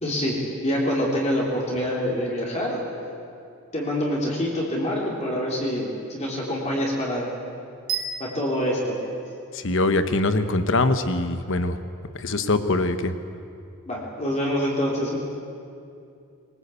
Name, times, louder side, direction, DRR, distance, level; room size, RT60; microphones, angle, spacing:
voice 1, 0.0-2.8 3.7-7.3 8.2-9.0 13.9-15.2, equal, 30° left, -3 dB, 3.4 m, -26 dB
sound 1, 7.9-10.0, right 6 dB, 60° right, 3.2 m, -33 dB
voice 2, 9.5-11.8 12.1-13.1, left 2 dB, 60° left, 10 dB, 1.2 m, -23 dB
22.5 x 18.5 x 8.4 m, 2.5 s
head